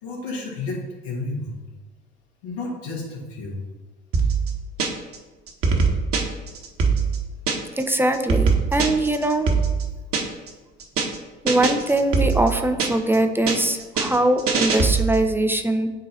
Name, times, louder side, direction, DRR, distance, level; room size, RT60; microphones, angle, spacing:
voice 1, 0.0-1.6 2.4-3.6, left 2 dB, 75° left, -3 dB, 2.0 m, -31 dB
sound 1, 4.1-5.2 5.5-7.8 8.1-10.5 10.8-11.2 11.5-13.2 13.5-15.3, right 5 dB, 45° right, 1.1 m, -22 dB
voice 2, 7.8-9.5 11.4-15.9, right 1 dB, 5° right, 6 dB, 0.5 m, -22 dB
8.4 x 2.8 x 4.0 m, 1.3 s
hypercardioid pair, 60°, 33 cm